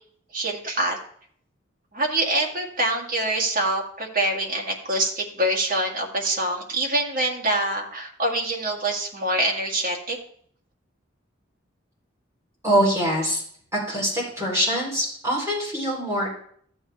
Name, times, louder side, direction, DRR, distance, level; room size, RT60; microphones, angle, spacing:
voice 1, 0.3-1.0 1.9-10.2, right 1 dB, 45° right, 0 dB, 1.9 m, -25 dB
voice 2, 12.6-13.4 13.7-16.3, equal, 15° right, -5 dB, 3.3 m, -24 dB
14.5 x 7.8 x 3.4 m, 0.62 s
head